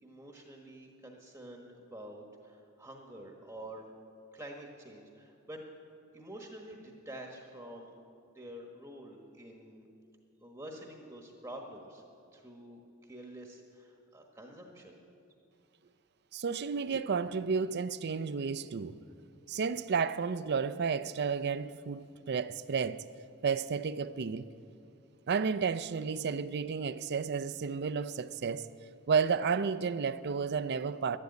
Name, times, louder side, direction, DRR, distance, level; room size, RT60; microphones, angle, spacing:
voice 1, 0.0-3.8 4.3-5.6 6.1-7.9 8.3-9.9 10.4-12.0 12.3-15.0, right 1 dB, 15° right, 1 dB, 1.2 m, -48 dB
voice 2, 16.3-19.0 19.5-23.0 23.4-24.5 25.3-28.7 29.1-31.2, right 5 dB, 50° right, 14 dB, 0.5 m, -32 dB
12.0 x 11.5 x 9.6 m, 2.6 s
head